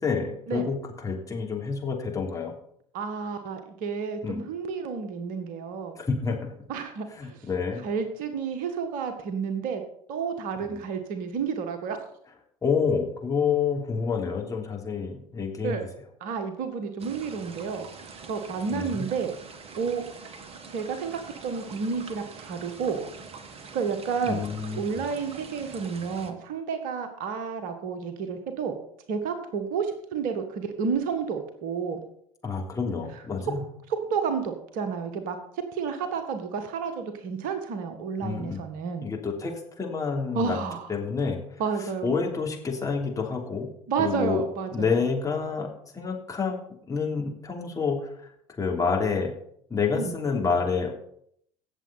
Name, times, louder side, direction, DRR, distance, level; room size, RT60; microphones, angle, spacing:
voice 1, 0.0-2.5 4.2-4.5 5.9-6.5 7.1-7.8 10.6-10.8 12.6-15.8 18.7-19.1 24.3-24.8 32.4-33.6 38.2-38.6 39.0-40.6 40.9-43.7 44.0-44.4 44.7-45.7 45.9-46.6 46.9-49.3 49.7-50.9, left 5 dB, 20° left, 0 dB, 3.2 m, -28 dB
voice 2, 2.9-6.0 6.7-7.4 7.8-9.8 10.1-12.0 15.6-15.8 16.2-17.9 18.3-19.3 19.7-20.0 20.7-23.0 23.7-28.8 29.1-32.0 34.1-35.4 35.7-39.1 40.3-40.9 41.6-42.1 43.9-44.9 50.0-50.1, right 6 dB, 55° right, 7 dB, 1.7 m, -30 dB
sound 1, 17.0-26.3, right 5 dB, 35° right, 1.5 m, -44 dB
17.5 x 7.5 x 4.2 m, 0.66 s
figure-of-eight pair, 65°, 17 cm